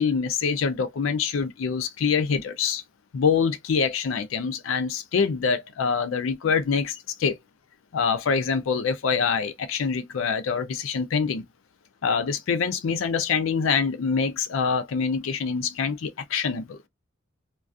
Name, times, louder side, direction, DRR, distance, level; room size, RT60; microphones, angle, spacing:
voice 1, 0.0-2.8 3.1-7.4 7.9-11.4 12.0-16.8, left 5 dB, 85° left, 0.4 m, -25 dB
2.4 x 2.3 x 2.4 m
head